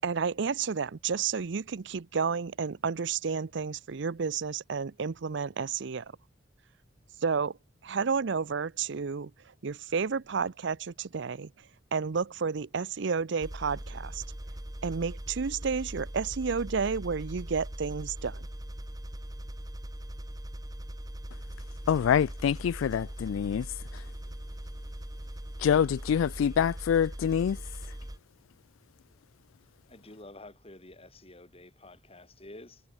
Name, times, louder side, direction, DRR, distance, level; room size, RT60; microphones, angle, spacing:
voice 1, 0.0-6.1 7.2-7.6 7.8-9.3 9.6-11.5 11.9-14.2 14.8-18.5, right 5 dB, 65° right, 0.6 m, -31 dB
sound 1, 13.4-28.2, equal, 20° right, 1.7 m, -41 dB
voice 2, 21.9-23.7 25.6-27.6, left 8 dB, 85° left, 0.3 m, -25 dB
voice 3, 29.9-32.8, left 2 dB, 30° left, 4.7 m, -49 dB
head